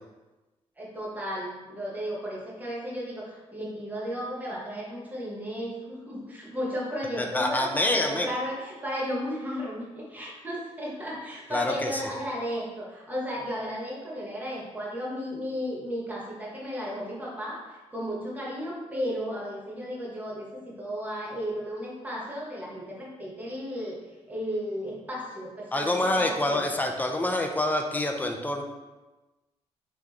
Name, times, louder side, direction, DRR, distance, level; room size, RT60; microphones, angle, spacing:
voice 1, 0.8-24.0 24.3-26.7, equal, 15° right, -4 dB, 1.0 m, -34 dB
voice 2, 7.2-8.3 11.5-12.0 25.7-28.6, left 1 dB, 15° left, 3 dB, 0.4 m, -26 dB
3.6 x 3.0 x 3.3 m, 1.2 s
cardioid pair, 135°, 11 cm